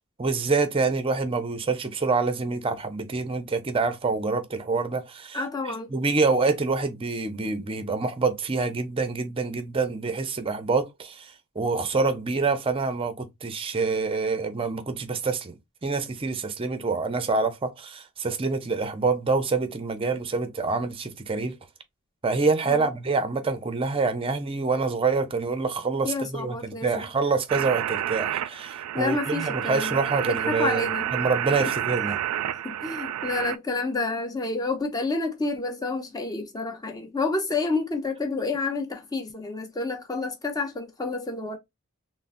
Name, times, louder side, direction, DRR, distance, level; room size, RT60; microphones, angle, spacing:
voice 1, 0.2-5.4 5.9-15.5 15.8-21.6 22.2-30.9 31.1-32.2, right 4 dB, 25° right, 0.5 m, -26 dB
voice 2, 5.3-5.9 22.7-22.9 26.0-27.1 28.9-31.1 31.6-31.7 32.6-41.6, left 3 dB, 15° left, 0.6 m, -29 dB
sound 1, 27.5-33.6, right 11 dB, 85° right, 0.3 m, -29 dB
3.7 x 2.0 x 2.5 m
head